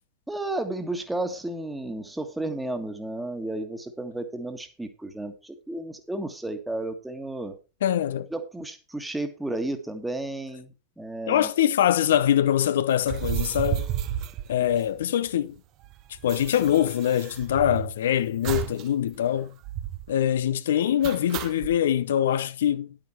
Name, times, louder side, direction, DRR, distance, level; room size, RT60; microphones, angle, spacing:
voice 1, 0.3-7.6 8.3-11.5, right 2 dB, 5° right, 1.6 m, -33 dB
voice 2, 7.8-8.3 11.3-13.9 14.5-15.6 16.2-19.5 20.1-23.0, left 10 dB, 60° left, 0.6 m, -23 dB
sound 1, 13.0-15.3 15.6-15.7 15.8-17.9 18.4-18.9 19.1-19.2 19.6-20.1 21.0-21.8, right 12 dB, 40° right, 0.8 m, -32 dB
11.0 x 8.9 x 4.5 m
figure-of-eight pair, 90°, 0 cm